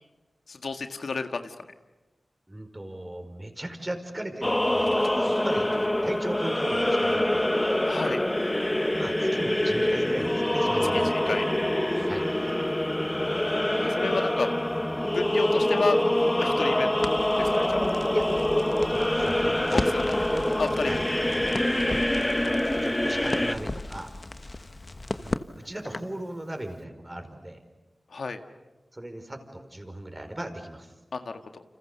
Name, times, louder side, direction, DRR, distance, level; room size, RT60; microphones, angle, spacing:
voice 1, 0.5-1.5 7.8-8.2 10.9-11.4 13.8-14.5 15.1-16.0 16.4-16.9 17.4-17.8 19.7-20.1 20.6-21.0 28.1-28.4 31.1-31.6, left 4 dB, 85° left, 7 dB, 1.7 m, -31 dB
voice 2, 2.5-5.7 6.0-7.6 8.9-11.2 12.0-12.3 18.1-18.3 18.6-20.0 20.3-21.0 21.8-22.1 22.3-24.1 25.2-27.6 28.9-30.9, right 1 dB, 25° right, 7 dB, 5.0 m, -38 dB
sound 1, 4.4-23.6, left 1 dB, 15° left, 1.2 m, -25 dB
sound 2, 8.9-21.5, equal, 10° right, 1.4 m, -41 dB
Crackle, 17.0-26.2, left 2 dB, 40° left, 1.3 m, -36 dB
29.5 x 27.0 x 6.9 m, 1.1 s
cardioid pair, 50°, 0 cm